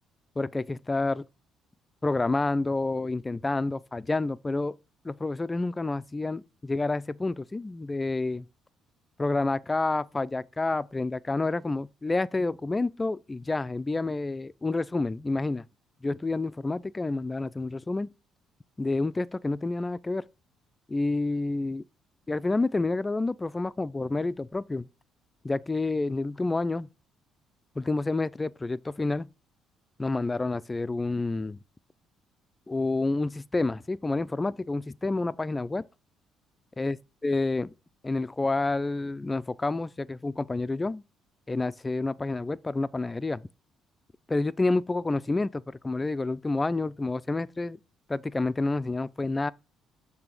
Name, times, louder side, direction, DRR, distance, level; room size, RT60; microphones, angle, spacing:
voice 1, 0.4-1.2 2.0-4.8 5.0-8.5 9.2-15.6 16.0-18.1 18.8-20.2 20.9-21.8 22.3-24.9 25.4-26.9 27.8-29.3 30.0-31.6 32.7-35.8 36.8-37.0 37.2-37.7 38.0-41.0 41.5-43.4 44.3-47.8 48.1-49.5, left 2 dB, 20° left, 0.4 m, -29 dB
6.8 x 3.3 x 6.0 m
supercardioid pair, 60°, 0 cm